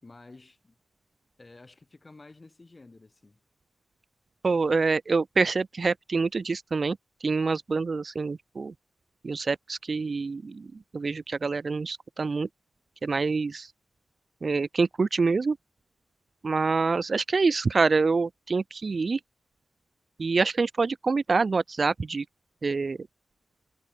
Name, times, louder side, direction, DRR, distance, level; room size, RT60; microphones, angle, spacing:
voice 1, 0.0-0.8 1.4-3.4, left 3 dB, 25° left, 4.6 m, -51 dB
voice 2, 4.4-8.7 9.2-12.5 13.0-13.7 14.4-15.6 16.4-19.2 20.2-22.2 22.6-23.0, right 4 dB, 40° right, 0.5 m, -26 dB
wide cardioid pair, 135°, 0 cm